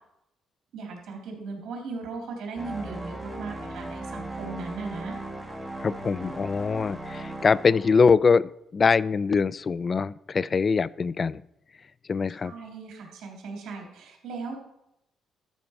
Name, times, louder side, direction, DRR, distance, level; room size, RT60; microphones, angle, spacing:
voice 1, 0.7-5.2 12.4-14.6, right 4 dB, 75° right, 1 dB, 3.0 m, -37 dB
sound 1, 2.6-8.4, right 1 dB, 10° right, 1.8 m, -38 dB
voice 2, 5.8-11.4 12.1-12.5, left 5 dB, 40° left, 20 dB, 0.3 m, -23 dB
12.5 x 4.4 x 5.9 m, 0.85 s
cardioid pair, 90°, 0 cm